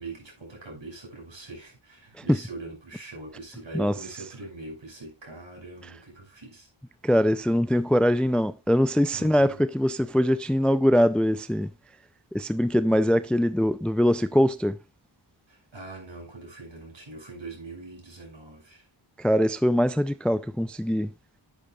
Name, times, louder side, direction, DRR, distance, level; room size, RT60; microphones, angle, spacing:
voice 1, 0.0-6.7 9.1-9.6 15.5-18.9, right 2 dB, 60° right, 6.2 m, -42 dB
voice 2, 7.0-11.7 12.3-14.8 19.2-21.1, equal, ahead, 0.5 m, -22 dB
10.5 x 9.1 x 2.4 m
wide cardioid pair, 50°, 49 cm